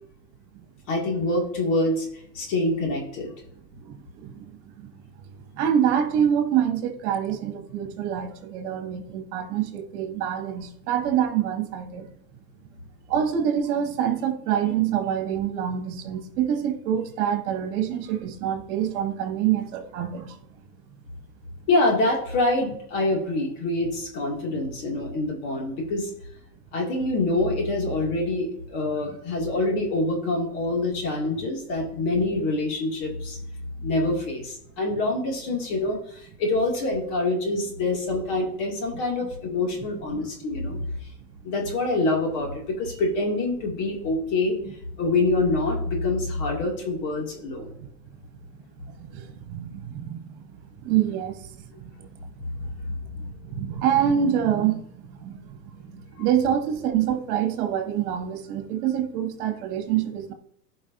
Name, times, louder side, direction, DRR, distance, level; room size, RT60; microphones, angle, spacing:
voice 1, 0.9-3.3 21.7-26.1 26.7-33.4 33.8-40.8 41.4-44.6 45.0-47.7 52.4-52.5, left 2 dB, 35° left, 2.5 m, -25 dB
voice 2, 3.7-4.5 5.5-12.1 13.1-20.4 24.5-24.6 40.1-40.3 40.7-40.9 44.7-44.8 47.8-48.1 48.5-48.6 49.0-60.3, right 9 dB, 45° right, 2.1 m, -26 dB
16.0 x 5.4 x 2.7 m
hypercardioid pair, 140°, 49 cm